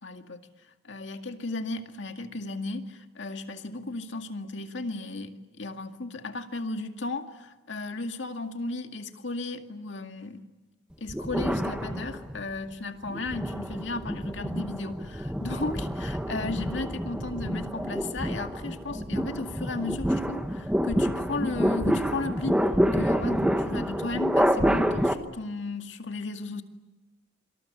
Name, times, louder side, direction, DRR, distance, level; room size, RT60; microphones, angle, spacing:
voice 1, 0.0-10.4 11.0-26.6, left 2 dB, 70° left, 5 dB, 2.1 m, -35 dB
sound 1, 11.1-12.5 13.1-25.1, equal, 5° right, 1.3 m, -28 dB
26.5 x 26.0 x 8.3 m, 1.1 s
head